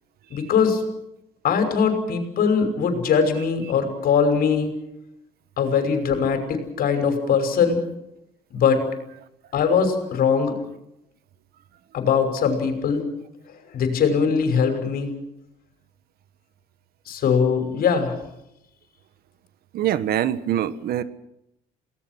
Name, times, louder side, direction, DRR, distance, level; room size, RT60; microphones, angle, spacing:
voice 1, 0.3-0.8 1.4-4.7 5.6-7.8 8.5-8.8 9.5-10.6 11.9-13.0 13.7-15.1 17.1-18.1, left 6 dB, 65° left, 6 dB, 5.9 m, -21 dB
voice 2, 19.7-21.0, right 11 dB, 65° right, 13 dB, 1.4 m, -24 dB
29.0 x 19.0 x 6.2 m, 0.84 s
cardioid pair, 110°, 17 cm